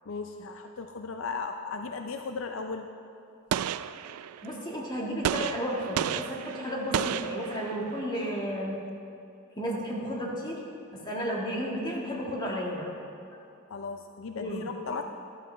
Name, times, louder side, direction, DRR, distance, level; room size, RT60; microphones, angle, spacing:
voice 1, 0.1-2.9 13.7-15.0, left 4 dB, 65° left, 6 dB, 0.5 m, -36 dB
Gunshot gunfire, 3.5-4.6 5.2-8.0, right 9 dB, 90° right, 0.3 m, -32 dB
voice 2, 4.4-8.8 9.6-10.6 10.9-13.0 13.3-13.4 14.4-14.6, equal, 20° left, -3 dB, 1.7 m, -33 dB
13.5 x 13.0 x 3.3 m, 2.6 s
head